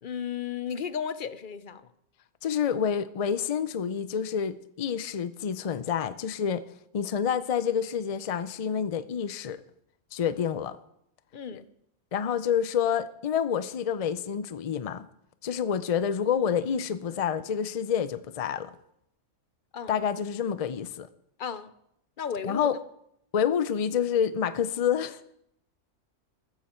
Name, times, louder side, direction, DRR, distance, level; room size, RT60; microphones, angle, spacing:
voice 1, 0.0-1.9 11.3-11.7 19.7-19.9 21.4-21.7 22.2-22.7, left 7 dB, 50° left, 0.7 m, -34 dB
voice 2, 2.4-6.6 6.9-9.6 10.1-10.8 11.5-11.6 12.1-15.1 15.4-18.7 19.9-21.1 22.4-22.8 23.3-25.2, left 8 dB, 65° left, 0.3 m, -28 dB
14.5 x 14.0 x 4.4 m
omnidirectional pair, 1.4 m